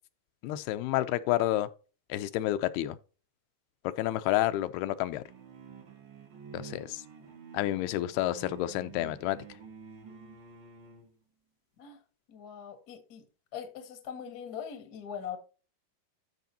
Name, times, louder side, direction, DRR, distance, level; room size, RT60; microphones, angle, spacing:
voice 1, 0.4-1.7 2.1-3.0 4.0-5.2 6.5-7.0 7.5-9.4, left 15 dB, 85° left, 2.7 m, -29 dB
sound 1, 5.3-11.1, right 5 dB, 75° right, 1.0 m, -49 dB
voice 2, 12.3-13.2 13.5-15.4, left 8 dB, 65° left, 0.9 m, -41 dB
13.0 x 5.1 x 2.8 m
omnidirectional pair, 4.4 m